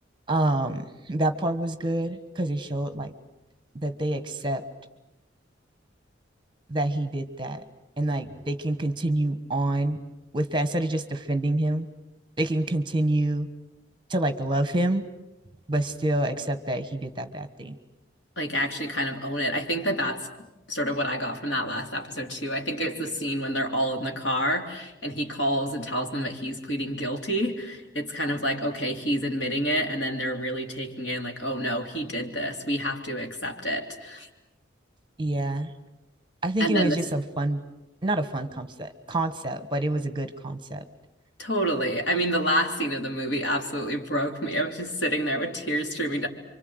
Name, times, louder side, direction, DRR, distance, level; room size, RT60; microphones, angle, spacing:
voice 1, 0.3-3.1 3.7-4.6 6.7-7.6 8.0-10.0 10.3-11.9 12.4-13.5 14.1-15.0 15.7-17.8 35.2-35.7 36.4-37.6 38.0-40.8, right 1 dB, 25° right, 11 dB, 1.4 m, -27 dB
voice 2, 18.4-20.3 20.7-34.3 36.6-37.0 41.4-46.3, equal, 75° left, 3 dB, 3.3 m, -28 dB
28.5 x 25.0 x 8.0 m, 1.0 s
head